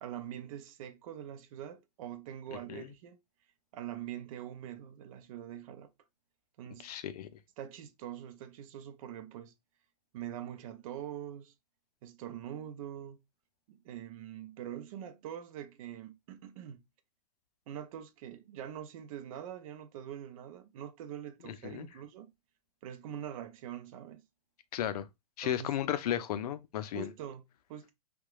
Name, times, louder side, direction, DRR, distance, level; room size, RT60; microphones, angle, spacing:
voice 1, 0.0-3.2 3.7-5.9 6.6-6.9 7.6-9.5 10.1-11.5 12.0-13.2 13.7-16.8 17.7-22.3 22.8-24.3 25.4-25.8 26.9-27.9, right 10 dB, 55° right, 0.5 m, -44 dB
voice 2, 6.8-7.3 21.6-21.9 24.7-25.1 25.4-27.1, left 11 dB, 70° left, 0.4 m, -34 dB
2.8 x 2.2 x 2.3 m
hypercardioid pair, 125°, 21 cm